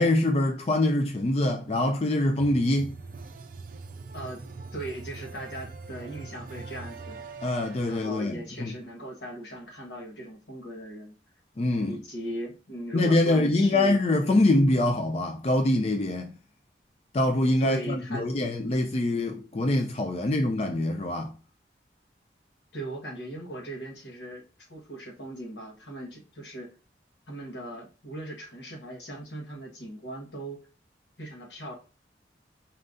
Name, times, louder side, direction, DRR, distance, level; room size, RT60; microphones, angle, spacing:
voice 1, 0.0-2.9 7.4-8.7 11.6-12.0 12.9-16.3 17.1-21.3, left 1 dB, 35° left, 0.4 m, -24 dB
sound 1, 2.4-8.0, right 4 dB, 50° right, 0.4 m, -42 dB
voice 2, 4.7-7.2 7.9-11.1 11.8-14.0 14.3-14.5 17.6-18.3 22.7-26.7 27.3-30.6 31.2-31.7, right 1 dB, 80° left, 1.3 m, -39 dB
4.3 x 3.8 x 2.5 m
head